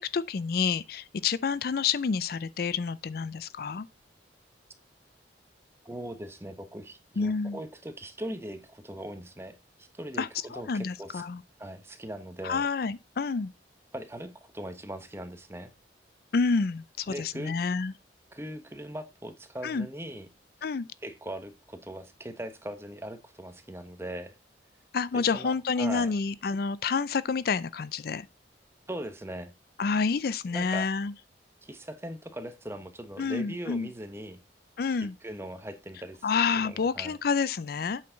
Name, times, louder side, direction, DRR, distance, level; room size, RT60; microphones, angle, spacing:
voice 1, 0.0-3.9 7.2-7.6 10.2-11.4 12.4-13.5 16.3-17.9 19.6-19.9 20.6-20.9 24.9-28.3 29.8-31.1 33.2-33.9 34.8-35.1 36.2-38.0, left 5 dB, 55° left, 0.4 m, -29 dB
voice 2, 5.8-11.2 11.6-12.7 13.9-15.7 17.1-17.6 18.3-20.3 21.0-24.3 25.1-26.1 28.9-29.5 30.5-30.9 31.6-34.4 35.2-36.2 36.5-37.2, right 1 dB, 15° right, 1.1 m, -40 dB
8.5 x 6.6 x 3.8 m
head